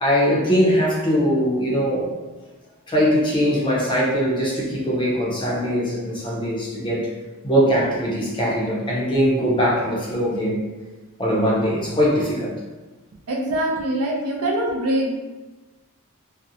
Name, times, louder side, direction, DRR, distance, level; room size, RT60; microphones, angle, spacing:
voice 1, 0.0-2.1 2.9-7.1 7.4-10.7 11.2-12.5, equal, 20° left, -4 dB, 0.5 m, -21 dB
voice 2, 13.3-15.1, right 1 dB, 75° right, -1 dB, 0.5 m, -23 dB
2.5 x 2.0 x 2.7 m, 1.2 s
head